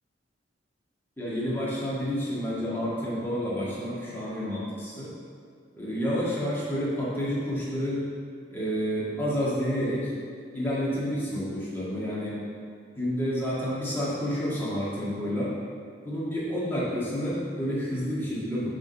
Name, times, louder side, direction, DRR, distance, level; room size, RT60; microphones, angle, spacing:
voice 1, 1.2-5.1 5.7-8.1 8.5-10.1 10.5-12.4 13.0-15.5 16.0-18.7, equal, 10° left, -9 dB, 2.1 m, -29 dB
7.1 x 3.8 x 6.5 m, 2.1 s
head